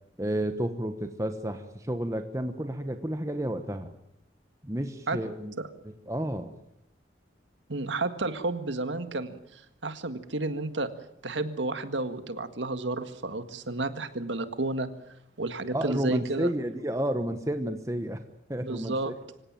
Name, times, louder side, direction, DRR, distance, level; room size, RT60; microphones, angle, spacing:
voice 1, 0.2-3.9 4.6-5.5 6.1-6.5 15.7-18.2 18.5-19.1, right 1 dB, 15° right, 7 dB, 1.2 m, -31 dB
voice 2, 7.7-10.9 11.2-14.9 15.4-16.5 18.6-19.1, right 2 dB, 90° right, 10 dB, 1.8 m, -31 dB
25.0 x 17.0 x 9.0 m, 0.80 s
head